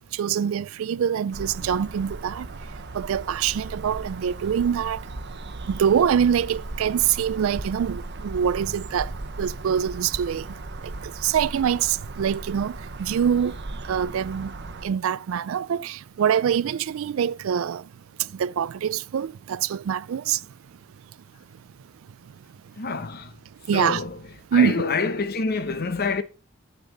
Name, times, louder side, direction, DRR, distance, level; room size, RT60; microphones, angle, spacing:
voice 1, 0.1-2.5 2.9-5.0 5.7-9.1 9.4-10.4 11.0-13.6 13.9-14.5 14.8-17.8 18.2-20.4 23.7-24.0 24.5-24.8, right 8 dB, 70° right, 0.3 m, -24 dB
sound 1, 1.3-14.9, right 2 dB, 55° right, 0.9 m, -37 dB
voice 2, 22.8-23.4 23.7-24.2 24.5-26.2, left 4 dB, 50° left, 0.9 m, -27 dB
8.5 x 8.2 x 3.9 m
head